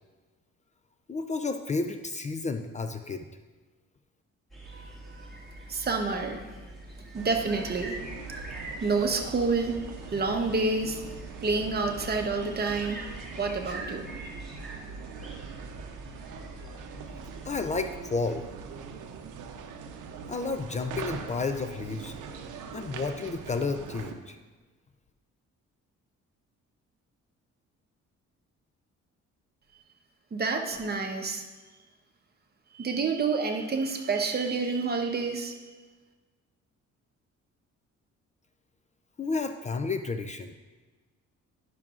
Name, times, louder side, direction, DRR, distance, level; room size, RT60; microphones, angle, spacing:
voice 1, 1.1-3.3 17.4-18.4 20.3-22.1 22.7-24.4 39.2-40.5, left 4 dB, 25° left, 7 dB, 0.4 m, -31 dB
sound 1, 4.5-18.0, right 1 dB, ahead, 1.9 m, -44 dB
voice 2, 4.7-5.4 5.7-6.4 7.1-8.0 8.8-11.0 11.4-14.0 30.3-31.4 32.7-35.6, right 4 dB, 30° right, 3 dB, 0.9 m, -29 dB
sound 2, 7.2-24.1, right 6 dB, 85° right, 0.7 m, -42 dB
10.5 x 6.0 x 2.4 m, 1.3 s
cardioid pair, 90°, 30 cm